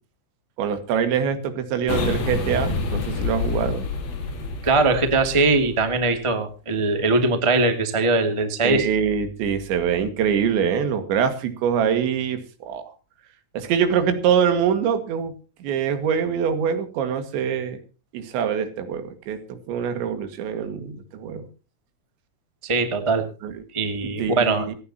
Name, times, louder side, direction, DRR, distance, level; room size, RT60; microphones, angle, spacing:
voice 1, 0.6-3.9 8.6-12.8 13.5-15.3 15.6-17.8 18.1-19.4 19.7-21.5 23.4-23.6 24.2-24.7, right 7 dB, 70° right, 8 dB, 4.2 m, -24 dB
sound 1, 1.9-6.1, left 4 dB, 55° left, 4.6 m, -28 dB
voice 2, 4.6-8.9 22.6-23.2 23.7-24.7, right 3 dB, 55° right, 6 dB, 0.3 m, -21 dB
27.0 x 9.4 x 2.9 m, 0.33 s
omnidirectional pair, 5.5 m